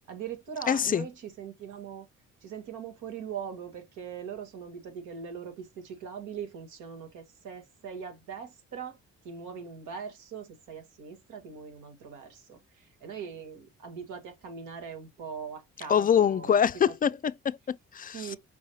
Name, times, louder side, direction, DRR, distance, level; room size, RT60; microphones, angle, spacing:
voice 1, 0.1-2.1 2.4-9.0 9.2-16.6 16.9-17.0 18.1-18.4, right 7 dB, 85° right, 1.7 m, -41 dB
voice 2, 0.7-1.1 15.9-18.4, left 8 dB, 30° left, 0.3 m, -25 dB
5.5 x 3.1 x 2.7 m
cardioid pair, 90°, 30 cm